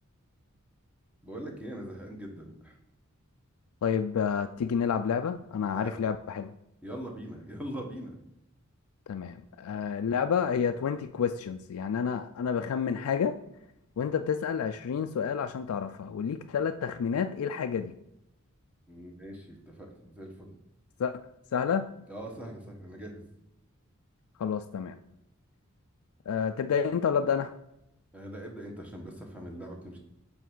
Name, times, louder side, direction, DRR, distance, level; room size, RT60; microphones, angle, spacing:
voice 1, 1.2-2.8 5.7-5.9 6.8-8.1 18.9-20.5 22.1-23.1 28.1-30.0, right 1 dB, 5° right, 0 dB, 1.2 m, -41 dB
voice 2, 3.8-6.5 9.1-13.3 14.0-17.9 21.0-21.2 21.5-21.9 24.4-25.0 26.3-27.5, left 7 dB, 85° left, 7 dB, 0.3 m, -29 dB
7.0 x 3.4 x 6.0 m, 0.84 s
head